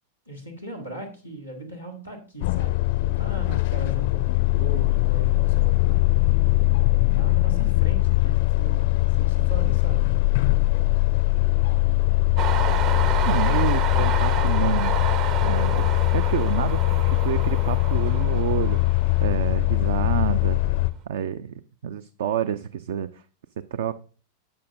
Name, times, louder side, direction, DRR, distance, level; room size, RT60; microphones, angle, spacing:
voice 1, 0.3-6.0 6.4-6.6 7.1-10.2, right 1 dB, 90° right, -1 dB, 1.8 m, -38 dB
sound 1, 2.4-20.9, left 21 dB, 50° left, 0.4 m, -21 dB
Train, 12.4-19.8 20.2-21.0, right 8 dB, 40° right, 0.8 m, -30 dB
voice 2, 13.3-14.9 15.4-20.6 21.1-21.5 21.8-23.2 23.7-24.0, right 9 dB, 60° right, 15 dB, 0.4 m, -28 dB
12.0 x 8.0 x 2.6 m, 0.37 s
figure-of-eight pair, 90°, 0 cm